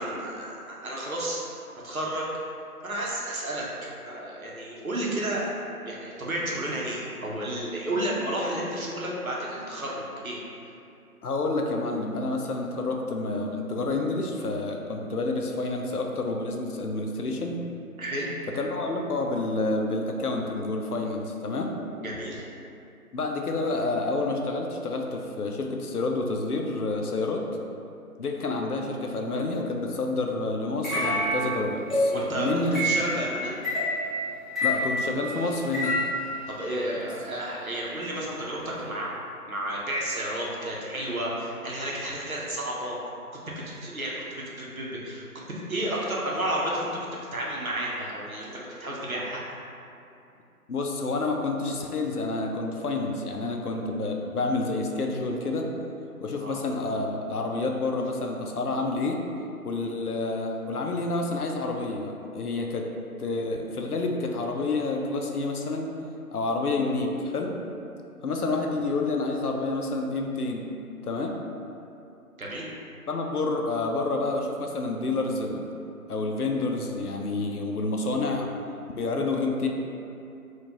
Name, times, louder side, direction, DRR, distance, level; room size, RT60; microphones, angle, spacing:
voice 1, 0.0-1.4 1.8-2.3 2.8-3.7 4.1-5.5 5.8-10.4 18.0-18.3 22.0-22.4 32.1-32.5 32.8-33.6 36.5-39.1 39.5-43.0 43.3-45.3 45.7-49.4 56.4-56.6 72.4-72.7, right 1 dB, 65° right, -4 dB, 0.9 m, -32 dB
voice 2, 11.2-17.6 18.5-21.8 23.1-27.5 28.2-32.9 34.6-36.0 50.7-55.7 56.2-59.2 59.6-62.9 63.2-65.9 66.3-67.6 68.2-70.7 71.0-71.4 73.1-75.7 76.1-78.5 78.9-79.7, left 3 dB, 75° left, 1 dB, 0.6 m, -29 dB
sound 1, 30.8-36.3, equal, ahead, 0.6 m, -27 dB
4.2 x 2.4 x 2.9 m, 2.7 s
figure-of-eight pair, 180°, 46 cm